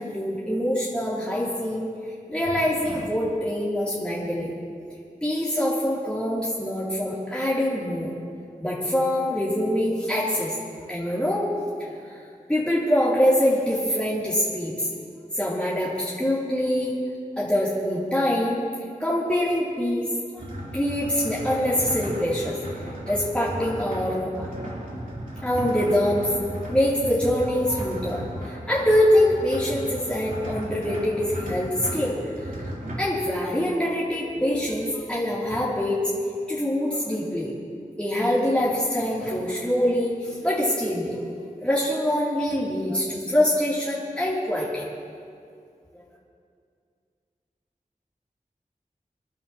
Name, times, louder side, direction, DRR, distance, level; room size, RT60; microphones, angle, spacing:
voice 1, 0.0-1.9 2.3-4.5 5.2-8.1 8.6-10.6 10.9-11.5 11.8-12.2 12.5-14.9 15.3-17.0 17.4-18.6 19.0-20.1 20.7-22.6 22.8-24.5 25.4-26.3 26.7-32.2 32.6-32.7 33.0-36.0 36.5-37.5 38.0-44.8, left 1 dB, 5° left, -8 dB, 2.9 m, -24 dB
sound 1, 20.4-33.0, right 1 dB, 70° right, 3.0 m, -35 dB
27.5 x 11.0 x 2.9 m, 2.3 s
wide cardioid pair, 45°, 15 cm